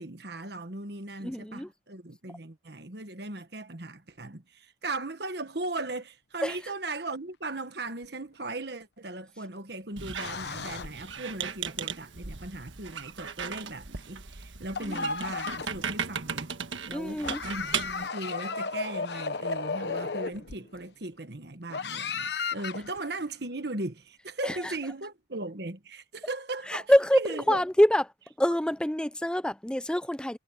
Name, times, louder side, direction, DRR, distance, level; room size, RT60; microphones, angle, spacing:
voice 1, 0.0-16.5 16.8-27.6, right 2 dB, 55° right, 1.5 m, -38 dB
voice 2, 1.2-1.7 6.4-6.6 14.8-15.1 16.9-17.4 24.4-24.7 26.7-28.0 28.4-30.4, equal, 5° left, 0.4 m, -26 dB
sound 1, 8.0-8.1 10.2-11.3 14.7-15.9 17.2-20.8 21.7-23.1, left 4 dB, 60° left, 1.0 m, -34 dB
Squeak, 10.0-18.1, right 6 dB, 80° right, 1.5 m, -37 dB
head